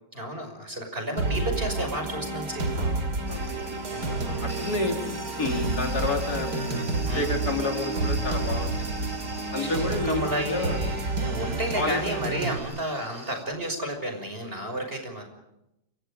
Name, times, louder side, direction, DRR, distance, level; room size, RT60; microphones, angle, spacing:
voice 1, 0.1-2.8 3.9-4.5 7.1-7.3 9.6-15.3, right 1 dB, 30° right, 5 dB, 6.2 m, -32 dB
sound 1, 1.2-12.6, right 2 dB, 75° right, 3.4 m, -30 dB
voice 2, 2.8-3.5 4.4-6.9 7.1-8.7 9.5-10.8 11.7-12.0 12.9-13.1, left 2 dB, 60° left, 2 dB, 4.0 m, -30 dB
sound 2, 3.3-13.5, right 1 dB, 15° right, 2.3 m, -43 dB
30.0 x 26.5 x 5.2 m, 0.86 s
omnidirectional pair, 1.8 m